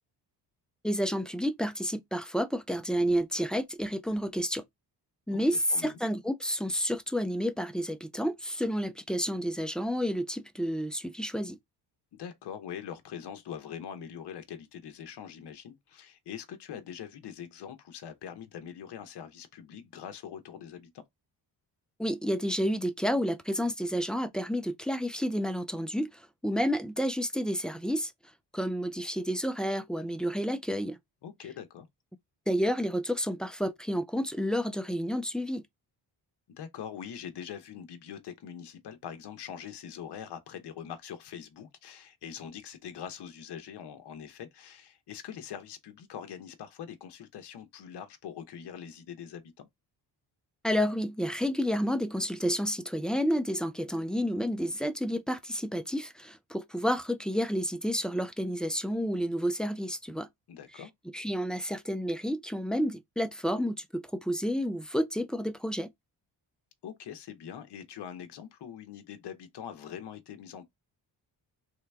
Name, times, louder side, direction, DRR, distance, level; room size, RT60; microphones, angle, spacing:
voice 1, 0.8-4.6 5.3-11.6 22.0-28.1 28.5-31.0 32.5-35.7 50.6-60.3 61.1-65.9, equal, ahead, 0.3 m, -30 dB
voice 2, 12.1-21.0 31.2-31.9 36.6-49.7 60.5-60.9 66.8-70.6, left 8 dB, 70° left, 1.0 m, -43 dB
3.3 x 2.9 x 3.4 m
cardioid pair, 105°, 42 cm